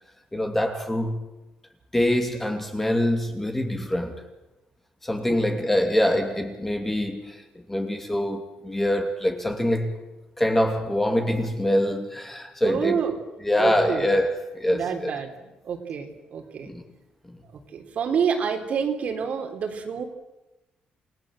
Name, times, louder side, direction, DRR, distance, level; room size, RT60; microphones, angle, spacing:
voice 1, 0.3-1.3 1.9-4.2 5.0-10.0 10.4-13.0 13.4-15.1 16.6-16.8 17.3-17.4, left 1 dB, 10° left, 2.6 m, -25 dB
voice 2, 12.6-13.2 13.6-14.1 14.7-16.7 17.7-20.0, right 6 dB, 55° right, 3.7 m, -28 dB
28.5 x 19.0 x 7.8 m
cardioid pair, 145°, 3 cm